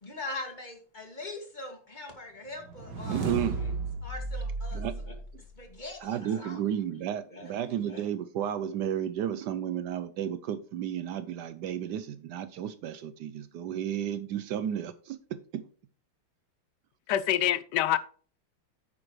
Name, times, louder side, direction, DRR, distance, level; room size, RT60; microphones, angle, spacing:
voice 1, 0.0-3.8 4.0-5.1 5.6-7.5 7.9-8.0, left 2 dB, 20° left, 2.1 m, -42 dB
sound 1, 2.6-5.9, right 3 dB, 55° right, 2.1 m, -34 dB
voice 2, 3.1-3.6 4.7-5.0 6.0-15.6, right 10 dB, 75° right, 0.9 m, -33 dB
voice 3, 17.1-18.0, left 12 dB, 75° left, 0.9 m, -25 dB
9.7 x 8.9 x 3.2 m
omnidirectional pair, 2.3 m